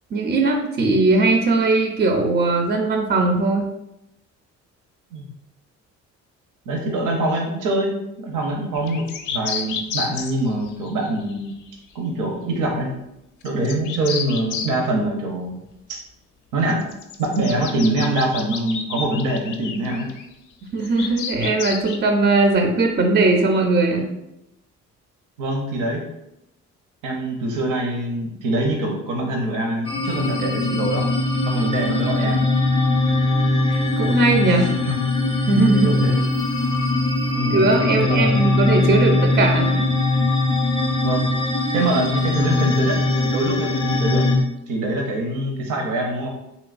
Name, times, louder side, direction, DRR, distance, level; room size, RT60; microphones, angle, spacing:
voice 1, 0.1-3.7 20.7-24.1 33.7-34.7 35.4-36.0 37.5-39.8, right 3 dB, 35° right, 3 dB, 0.4 m, -19 dB
voice 2, 6.7-11.5 11.9-12.9 13.4-15.6 15.9-16.0 16.5-16.9 17.2-20.1 25.4-26.0 27.0-31.1 31.4-32.4 34.8-34.9 35.8-36.2 37.3-38.4 41.0-41.3 41.7-44.2 44.7-46.3, right 1 dB, 85° right, 1 dB, 0.7 m, -24 dB
sound 1, 8.7-11.7 13.4-14.7 16.7-20.3 20.8-22.0, left 6 dB, 85° left, 0.5 m, -31 dB
sound 2, 29.8-44.4, left 2 dB, 20° left, 0.5 m, -21 dB
3.1 x 2.9 x 2.4 m, 0.85 s
cardioid pair, 90°, 30 cm